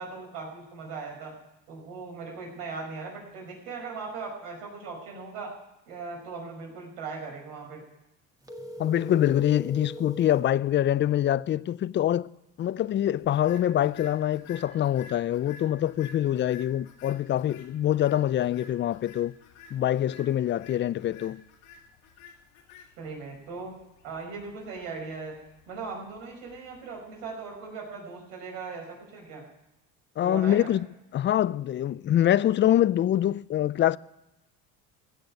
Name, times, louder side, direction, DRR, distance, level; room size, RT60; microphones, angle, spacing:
voice 1, 0.0-1.3 1.7-5.5 5.9-7.8 23.0-23.7 24.0-25.4 25.7-29.4 30.2-30.7, right 4 dB, 90° right, 5.3 m, -39 dB
sound 1, 8.4-10.5, equal, 10° right, 1.9 m, -40 dB
voice 2, 8.8-12.3 12.6-19.3 19.7-21.4 30.2-30.9 31.1-34.0, left 11 dB, 30° left, 0.4 m, -25 dB
sound 2, 13.2-27.6, left 5 dB, 85° left, 2.9 m, -52 dB
16.0 x 6.7 x 9.5 m
supercardioid pair, 90°, 38 cm